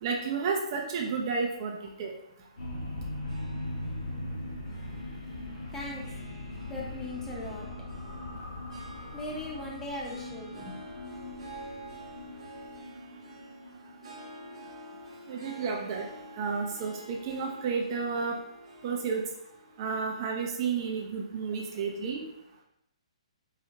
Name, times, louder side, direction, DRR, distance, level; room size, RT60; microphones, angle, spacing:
voice 1, 0.0-2.1 15.3-16.1 16.4-18.4 18.8-19.2 19.8-22.2, right 5 dB, 40° right, 1 dB, 0.4 m, -31 dB
sound 1, 2.6-15.4, left 1 dB, 65° left, 1.0 m, -40 dB
Harp, 3.2-21.7, right 1 dB, 65° right, 0.9 m, -49 dB
voice 2, 5.7-6.0 6.7-7.7 9.1-10.8 21.7-21.8, left 1 dB, 10° left, -3 dB, 0.6 m, -39 dB
3.8 x 2.1 x 2.8 m, 0.81 s
figure-of-eight pair, 135°, 3 cm